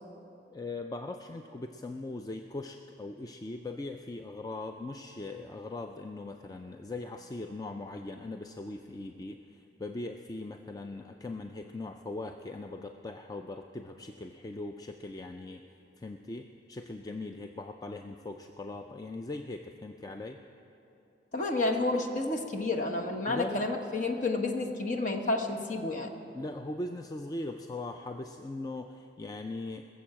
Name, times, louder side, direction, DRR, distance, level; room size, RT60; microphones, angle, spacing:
voice 1, 0.5-15.6 16.0-20.4 23.3-23.7 26.3-29.9, left 2 dB, 20° left, 5 dB, 0.4 m, -40 dB
voice 2, 21.3-26.1, left 2 dB, 45° left, 2 dB, 1.1 m, -30 dB
20.0 x 7.1 x 7.5 m, 2.9 s
head